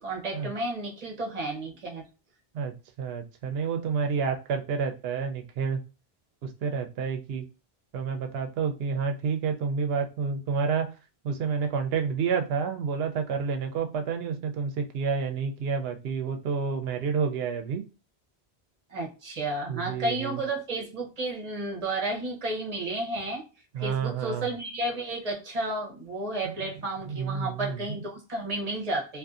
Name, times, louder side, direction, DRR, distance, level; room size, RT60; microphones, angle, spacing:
voice 1, 0.0-2.1 18.9-23.4 23.8-29.2, right 2 dB, 40° right, 0 dB, 0.8 m, -32 dB
voice 2, 2.5-5.8 6.4-7.5 7.9-11.0 11.2-17.8 19.7-20.4 23.7-24.5 26.4-26.6 27.1-28.0, right 6 dB, 75° right, 5 dB, 0.8 m, -29 dB
2.6 x 2.5 x 2.3 m, 0.31 s
omnidirectional pair, 1.1 m